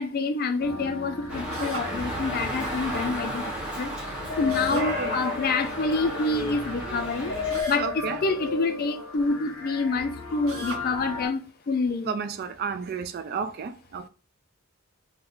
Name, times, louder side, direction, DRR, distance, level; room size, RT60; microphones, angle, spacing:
voice 1, 0.0-3.4 3.8-3.9 4.4-7.3 7.7-11.4 11.7-12.1, left 3 dB, 45° left, 0.4 m, -27 dB
sound 1, 0.6-11.3, left 5 dB, 75° left, 0.9 m, -35 dB
Dog, 1.3-7.6, right 1 dB, 5° right, 0.7 m, -33 dB
Drill, 1.5-1.9 4.5-4.9 7.5-7.9 10.5-10.9, right 3 dB, 80° right, 0.9 m, -38 dB
voice 2, 4.7-5.1 7.8-8.2 12.1-14.1, right 5 dB, 45° right, 0.3 m, -32 dB
2.4 x 2.2 x 3.5 m
head